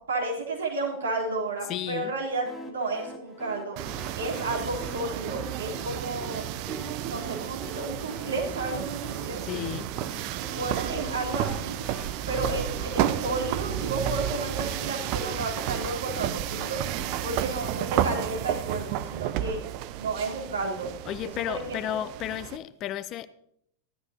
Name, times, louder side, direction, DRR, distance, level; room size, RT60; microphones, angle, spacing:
voice 1, 0.1-3.8 4.2-6.4 7.1-9.4 10.5-11.8 12.3-16.8 17.2-19.6 20.0-20.9 21.2-22.0, right 2 dB, 70° right, 3.7 m, -32 dB
voice 2, 1.6-2.1 9.4-9.9 21.0-23.3, left 11 dB, 35° left, 0.5 m, -33 dB
sound 1, 2.4-17.2, left 1 dB, 10° left, 1.2 m, -44 dB
sound 2, 3.8-22.6, right 12 dB, 45° right, 0.5 m, -32 dB
15.5 x 12.5 x 2.9 m
figure-of-eight pair, 90°, 0 cm